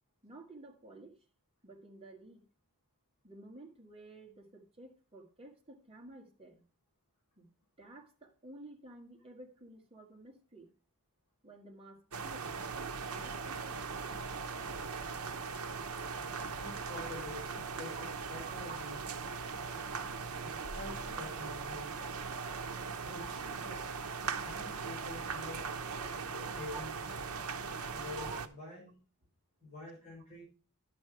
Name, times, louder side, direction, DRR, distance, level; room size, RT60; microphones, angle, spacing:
voice 1, 0.2-1.2 1.6-2.5 3.2-6.6 7.4-7.5 7.8-10.7 11.4-12.5 13.0-13.8 14.1-15.0 18.0-18.1 18.5-18.8 21.8-21.9 26.5-26.8 28.2-28.4, right 2 dB, 25° right, 1 dB, 1.8 m, -52 dB
sound 1, 12.1-28.5, right 5 dB, 85° right, 0.8 m, -39 dB
voice 2, 16.3-18.0 18.3-19.0 20.4-22.0 23.0-23.8 24.2-25.6 26.3-27.2 27.9-29.0 29.6-30.4, left 2 dB, 35° left, -7 dB, 6.0 m, -47 dB
11.5 x 6.1 x 4.7 m, 0.35 s
head